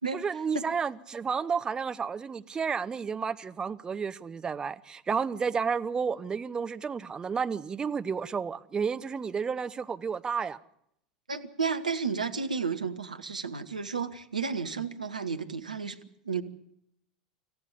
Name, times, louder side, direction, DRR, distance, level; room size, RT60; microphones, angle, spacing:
voice 1, 0.1-10.6, right 6 dB, 20° right, 0.8 m, -31 dB
voice 2, 11.3-16.0 16.2-16.4, right 5 dB, 80° right, 1.2 m, -32 dB
26.0 x 14.5 x 8.5 m
figure-of-eight pair, 80°, 4 cm